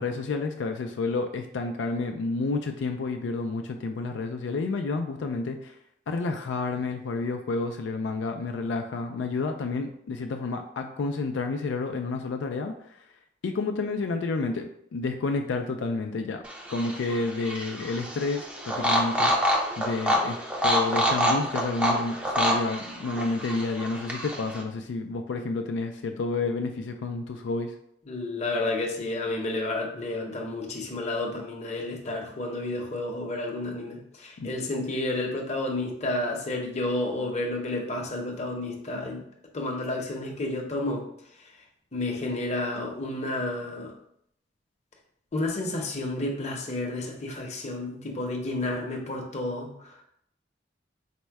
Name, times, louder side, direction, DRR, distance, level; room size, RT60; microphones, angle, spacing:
voice 1, 0.0-5.7 6.1-13.0 13.4-16.4 16.7-19.3 19.8-20.4 20.6-27.7 34.4-34.5, left 3 dB, 85° left, 4 dB, 0.4 m, -30 dB
sound 1, 16.4-24.6, equal, 5° right, 0.5 m, -27 dB
voice 2, 28.1-39.2 39.5-41.0 41.9-43.9 45.3-49.9, left 2 dB, 40° left, 0 dB, 0.7 m, -31 dB
4.3 x 2.1 x 4.5 m, 0.72 s
head